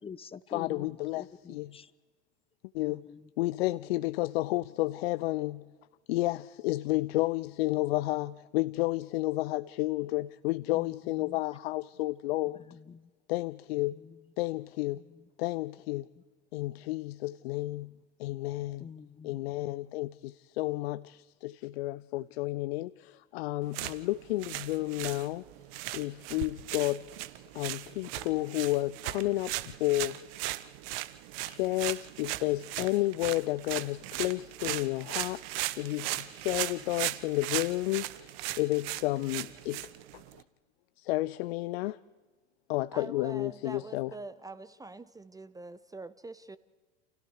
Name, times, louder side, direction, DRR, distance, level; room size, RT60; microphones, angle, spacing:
voice 1, 0.0-1.9 2.9-3.3 10.7-11.4 12.5-13.1 13.9-14.2 14.9-15.3 18.8-19.5, left 6 dB, 15° left, 18 dB, 0.8 m, -47 dB
voice 2, 0.5-1.8 2.7-3.0 3.4-5.7 6.1-12.6 13.3-14.0 14.4-15.0 15.4-16.1 16.5-17.9 18.2-18.9 19.2-25.4 25.9-30.2 31.4-39.8 41.0-42.0 42.7-44.1, left 19 dB, 60° left, 16 dB, 0.7 m, -31 dB
sound 1, 23.6-40.4, right 16 dB, 55° right, 1.3 m, -38 dB
voice 3, 42.9-46.6, right 2 dB, 10° right, 15 dB, 0.8 m, -44 dB
30.0 x 28.5 x 4.9 m, 1.3 s
hypercardioid pair, 90°, 36 cm